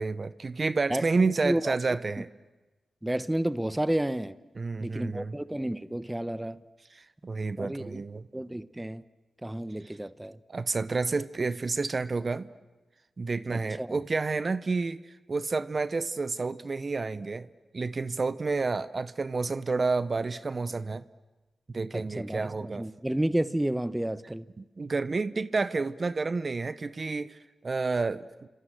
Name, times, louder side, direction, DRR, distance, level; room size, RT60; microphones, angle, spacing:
voice 1, 0.0-2.3 4.6-5.3 6.9-8.3 10.5-12.5 13.2-15.0 15.3-17.5 17.7-21.0 21.7-22.8 24.6-28.5, right 3 dB, 45° right, 0.9 m, -30 dB
voice 2, 0.9-1.8 3.0-4.4 4.8-6.6 7.6-8.1 8.3-9.0 9.4-10.4 13.5-14.0 21.9-24.5, right 1 dB, 10° right, 1.0 m, -31 dB
29.5 x 26.0 x 7.8 m
supercardioid pair, 40°, 0 cm